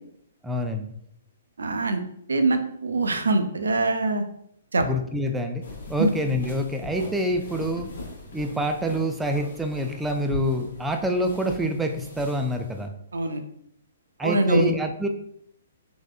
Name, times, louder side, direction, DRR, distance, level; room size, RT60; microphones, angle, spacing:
voice 1, 0.4-0.9 4.8-5.6 5.9-7.9 8.3-12.9 14.2-15.1, equal, 5° right, 4 dB, 0.3 m, -26 dB
voice 2, 1.6-2.0 2.3-4.2 4.7-4.9 6.0-6.1 13.1-13.4 14.2-14.7, right 2 dB, 85° right, 7 dB, 0.4 m, -23 dB
sound 1, 5.6-12.9, left 2 dB, 75° left, 0.8 m, -41 dB
3.5 x 2.1 x 2.4 m, 0.72 s
hypercardioid pair, 135°, 0 cm